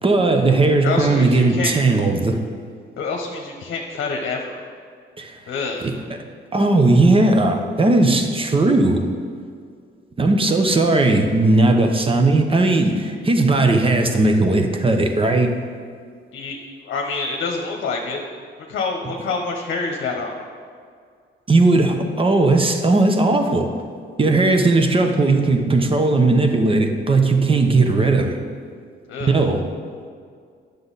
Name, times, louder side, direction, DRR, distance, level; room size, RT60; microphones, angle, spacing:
voice 1, 0.0-2.4 5.2-5.4 5.8-5.9 6.5-9.0 10.2-15.5 21.5-23.7 24.2-28.4 29.3-29.6, right 2 dB, 25° right, 5 dB, 0.9 m, -17 dB
voice 2, 0.8-1.7 3.0-4.6 5.5-5.9 16.3-18.2 18.7-20.4 29.1-29.4, left 4 dB, 65° left, 1 dB, 1.0 m, -27 dB
9.6 x 6.7 x 4.1 m, 2.1 s
cardioid pair, 90°, 20 cm